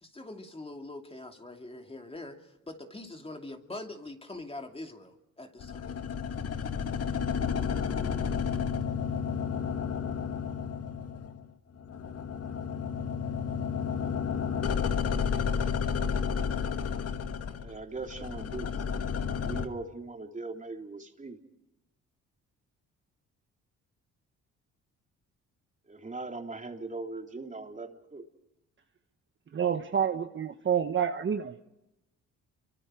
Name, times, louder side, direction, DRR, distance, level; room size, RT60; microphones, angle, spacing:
voice 1, 0.0-5.9 18.1-18.2, left 2 dB, 20° left, 4 dB, 2.7 m, -43 dB
sound 1, 5.6-11.5 11.8-19.7, left 6 dB, 55° left, 1.8 m, -31 dB
voice 2, 17.6-18.8 19.4-21.4 25.9-28.2, right 3 dB, 25° right, 3 dB, 3.4 m, -40 dB
voice 3, 29.5-31.6, right 8 dB, 40° right, 7 dB, 1.3 m, -28 dB
29.0 x 24.5 x 4.9 m, 0.90 s
cardioid pair, 90°, 30 cm